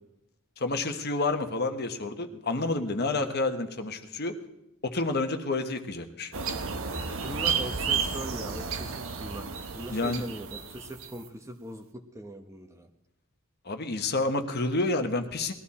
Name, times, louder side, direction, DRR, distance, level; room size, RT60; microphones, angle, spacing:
voice 1, 0.6-4.3 4.8-6.3 9.9-10.2 13.6-15.5, left 2 dB, 45° left, 6 dB, 1.2 m, -29 dB
sound 1, 6.3-11.2, right 6 dB, 65° right, 1.1 m, -32 dB
voice 2, 7.2-12.9, right 1 dB, 15° right, 6 dB, 1.0 m, -41 dB
20.0 x 13.0 x 4.3 m, 0.87 s
head